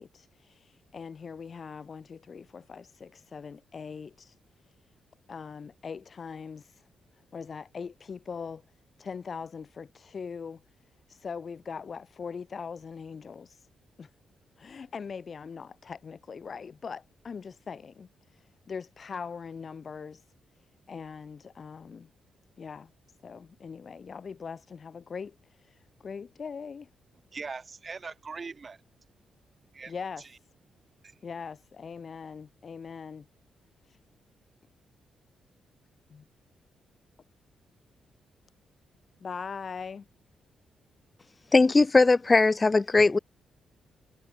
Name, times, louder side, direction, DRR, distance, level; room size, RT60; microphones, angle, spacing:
voice 1, 0.0-4.4 4.6-4.7 5.3-6.8 7.3-8.6 9.0-10.6 11.1-13.7 14.0-14.1 14.6-20.2 20.6-22.1 22.6-22.9 23.2-26.9 29.9-30.2 31.2-33.3 33.8-34.0 36.1-36.2 39.2-40.1, left 6 dB, 40° left, 2.9 m, -41 dB
voice 2, 27.3-28.8 29.7-30.4 31.0-31.2, right 4 dB, 30° right, 2.2 m, -41 dB
voice 3, 41.5-43.2, left 3 dB, 20° left, 0.4 m, -20 dB
cardioid pair, 140°, 0 cm